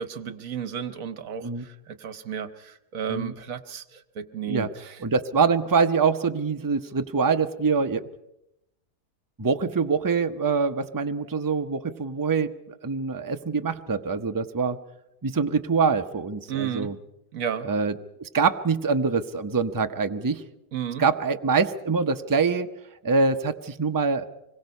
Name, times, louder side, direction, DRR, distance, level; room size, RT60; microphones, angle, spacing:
voice 1, 0.0-5.0 16.5-16.9 17.3-17.7 20.7-21.0, right 8 dB, 60° right, 12 dB, 1.3 m, -33 dB
voice 2, 5.0-8.0 9.4-12.5 12.8-14.8 15.2-17.0 17.6-17.9 18.2-20.4 21.0-22.7 23.0-24.3, right 5 dB, 25° right, 7 dB, 0.4 m, -24 dB
25.5 x 22.0 x 5.4 m, 0.87 s
omnidirectional pair, 1.7 m